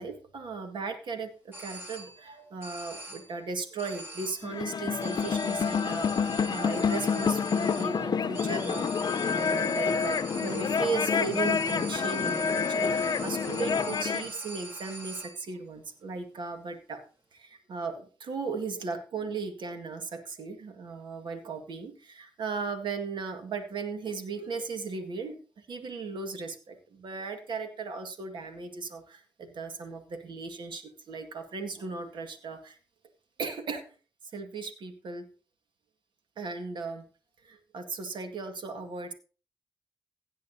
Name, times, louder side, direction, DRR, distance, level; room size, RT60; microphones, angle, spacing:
voice 1, 0.0-17.0 17.3-32.8 33.4-33.8 34.3-35.3 36.4-37.0 37.4-39.1, right 4 dB, 75° right, 7 dB, 1.9 m, -37 dB
sound 1, 1.5-2.3 2.6-3.4 3.8-4.6 5.0-15.5, right 2 dB, 25° right, 3.4 m, -43 dB
sound 2, 4.4-14.3, left 6 dB, 60° left, 0.7 m, -28 dB
16.5 x 9.2 x 2.8 m, 0.36 s
cardioid pair, 60°, 8 cm